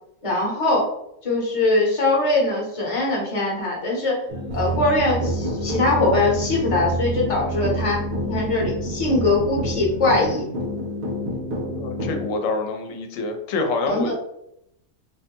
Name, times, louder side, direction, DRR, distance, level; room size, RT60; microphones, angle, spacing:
voice 1, 0.2-0.9 1.2-4.2 4.5-10.5 13.9-14.1, left 2 dB, 30° left, -2 dB, 0.8 m, -22 dB
sound 1, 4.3-12.2, left 2 dB, 40° right, 0.8 m, -30 dB
sound 2, 4.5-10.3, right 4 dB, 75° right, 1.0 m, -30 dB
voice 2, 11.8-14.1, left 3 dB, 75° left, 4 dB, 0.9 m, -26 dB
3.2 x 2.1 x 2.9 m, 0.79 s
omnidirectional pair, 1.4 m